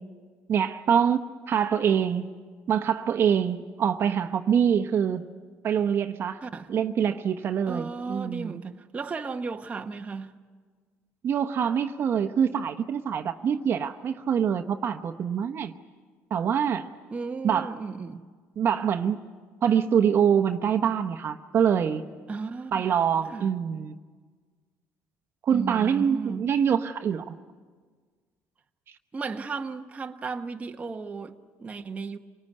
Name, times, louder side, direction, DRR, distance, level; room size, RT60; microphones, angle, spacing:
voice 1, 0.5-2.3 2.7-5.2 5.6-6.4 6.7-8.6 11.2-15.7 16.3-16.9 17.4-17.7 18.6-19.2 19.6-22.0 22.7-23.9 25.5-27.4, right 8 dB, 50° right, 1.1 m, -25 dB
voice 2, 6.4-6.7 7.7-10.4 17.1-18.3 22.3-22.9 23.3-23.5 25.5-26.5 29.1-32.2, right 4 dB, 25° right, 1.1 m, -35 dB
26.5 x 19.0 x 9.7 m
cardioid pair, 105°, 5 cm